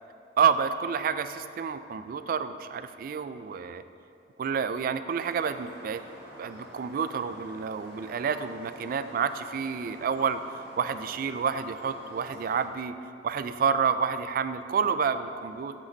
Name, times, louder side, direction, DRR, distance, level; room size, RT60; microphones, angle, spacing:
voice 1, 0.4-3.8 4.4-6.0 6.4-10.4 10.8-13.0 13.2-15.7, right 6 dB, 55° right, 11 dB, 0.3 m, -29 dB
sound 1, 5.1-12.7, right 1 dB, 70° right, 1.6 m, -47 dB
7.5 x 6.5 x 4.0 m, 2.7 s
head